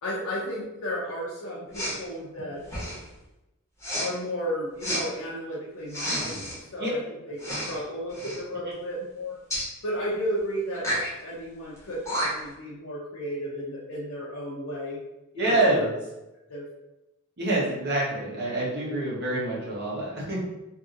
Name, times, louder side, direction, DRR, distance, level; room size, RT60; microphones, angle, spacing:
voice 1, 0.0-2.6 4.0-7.0 7.3-7.4 7.6-9.4 9.8-15.0 15.3-15.9 16.5-16.7, equal, 80° left, -7 dB, 0.6 m, -33 dB
Respiratory sounds, 1.7-2.0 2.6-3.1 3.8-4.1 4.8-5.0 5.9-6.6 7.4-7.8 8.1-8.4 9.5-9.7 10.7-11.1 11.8-11.9 12.0-12.5, equal, 15° left, 0.9 m, -30 dB
voice 2, 15.4-15.9 17.4-20.4, right 2 dB, 50° right, -5 dB, 0.9 m, -26 dB
2.6 x 2.6 x 2.5 m, 0.95 s
head